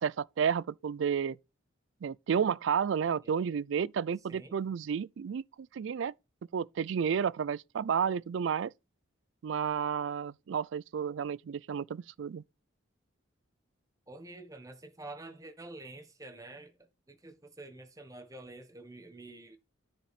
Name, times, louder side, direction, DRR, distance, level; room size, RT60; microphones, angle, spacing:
voice 1, 0.0-1.4 2.0-6.1 6.5-8.7 9.4-12.4, right 7 dB, 65° right, 0.3 m, -31 dB
voice 2, 14.1-16.7 17.1-19.6, right 2 dB, 15° right, 1.2 m, -48 dB
10.0 x 5.2 x 4.1 m
head